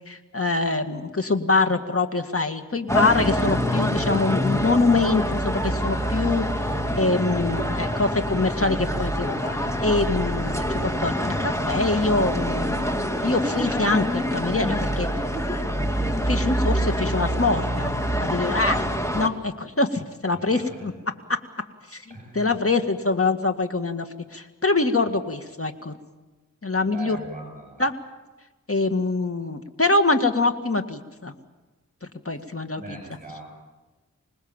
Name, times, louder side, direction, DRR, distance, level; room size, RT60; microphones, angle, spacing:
voice 1, 0.1-9.6 9.8-12.9 13.2-15.3 16.3-17.9 18.2-18.8 19.1-20.9 21.9-24.1 24.3-25.9 26.6-27.2 27.8-27.9 28.7-31.3 32.3-32.8, left 3 dB, 45° left, 7 dB, 2.1 m, -24 dB
sound 1, 2.9-19.3, equal, 10° left, 2.4 m, -26 dB
voice 2, 6.7-7.3 18.6-19.0 20.3-20.9 22.1-22.6 26.9-27.9 32.3-32.5 32.7-33.6, right 2 dB, 25° right, 0 dB, 6.9 m, -41 dB
26.0 x 20.0 x 7.4 m, 1.2 s
wide cardioid pair, 45°, 32 cm